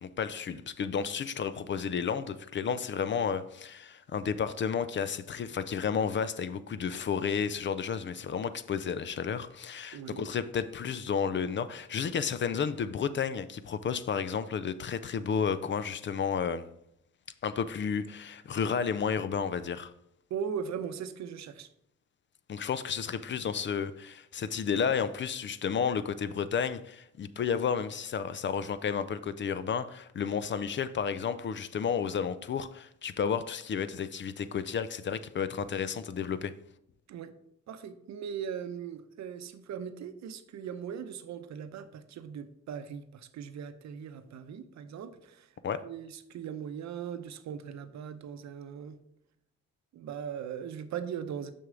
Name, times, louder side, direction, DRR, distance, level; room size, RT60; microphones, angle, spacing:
voice 1, 0.0-16.7 17.4-19.9 22.5-36.5 45.6-45.9, left 7 dB, 40° left, 0.4 m, -32 dB
voice 2, 9.9-10.3 20.3-21.7 37.1-37.3 37.7-45.5 45.8-49.0 49.9-51.5, right 8 dB, 65° right, 0.7 m, -39 dB
6.3 x 6.1 x 3.7 m
cardioid pair, 90°, 30 cm